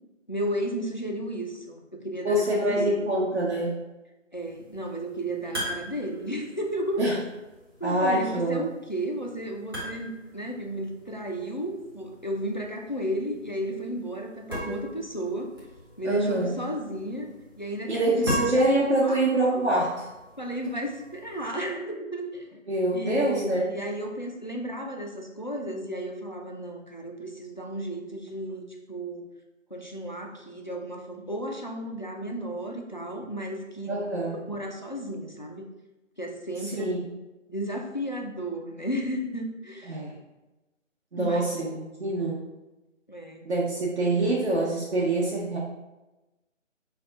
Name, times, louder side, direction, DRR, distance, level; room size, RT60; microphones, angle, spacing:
voice 1, 0.3-3.0 4.3-7.0 7.8-15.5 16.0-18.3 18.5-18.7 19.0-19.2 20.4-22.6 22.9-29.3 29.7-34.1 34.5-35.7 36.2-36.9 37.5-40.0 41.2-41.4 43.1-43.4, right 1 dB, 40° left, 2 dB, 0.4 m, -33 dB
voice 2, 2.2-3.7 7.0-7.2 7.8-8.6 16.0-16.6 17.9-20.0 22.7-23.7 33.9-34.4 36.6-37.0 39.9-40.2 41.1-42.4 43.4-45.6, right 1 dB, 55° right, -6 dB, 1.0 m, -25 dB
sound 1, 4.4-21.5, equal, 20° right, 0.8 m, -40 dB
5.1 x 2.3 x 3.8 m, 1.0 s
figure-of-eight pair, 165°, 39 cm